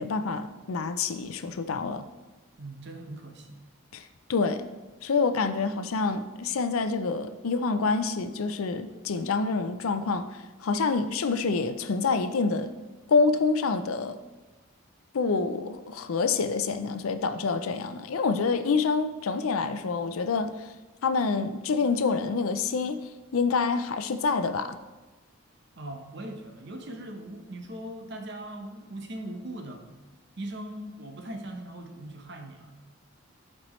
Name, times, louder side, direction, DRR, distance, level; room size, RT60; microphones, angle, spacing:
voice 1, 0.0-2.1 3.9-4.0 4.3-4.7 5.0-12.7 13.1-14.2 15.1-20.7 21.0-24.7, left 4 dB, 85° left, 10 dB, 0.5 m, -27 dB
voice 2, 2.6-3.6 25.8-29.9 30.4-32.7, right 1 dB, 55° right, 4 dB, 0.9 m, -40 dB
11.5 x 4.4 x 3.1 m, 1.2 s
head